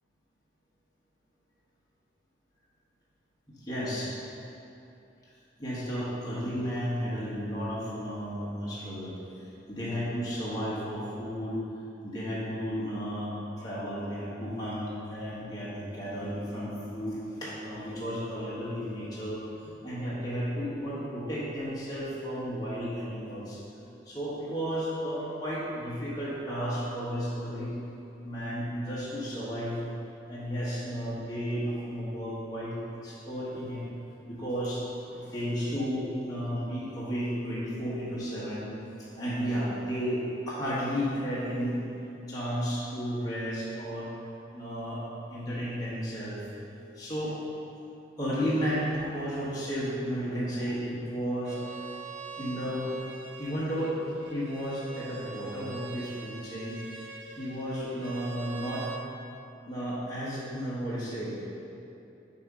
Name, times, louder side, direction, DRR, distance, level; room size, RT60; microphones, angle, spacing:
voice 1, 3.5-4.1 5.6-9.1 9.7-11.6 12.0-19.4 19.8-23.6 24.0-27.7 28.2-29.8 30.3-33.8 34.3-34.8 35.1-38.7 39.0-41.8 42.3-44.1 44.5-45.0 45.3-46.4 46.9-47.4 48.2-51.6 52.4-52.9 53.4-58.9 59.6-61.3, equal, 20° left, -9 dB, 1.2 m, -33 dB
Bowed string instrument, 51.4-59.1, right 5 dB, 75° right, 0.5 m, -44 dB
7.4 x 2.8 x 4.8 m, 2.8 s
head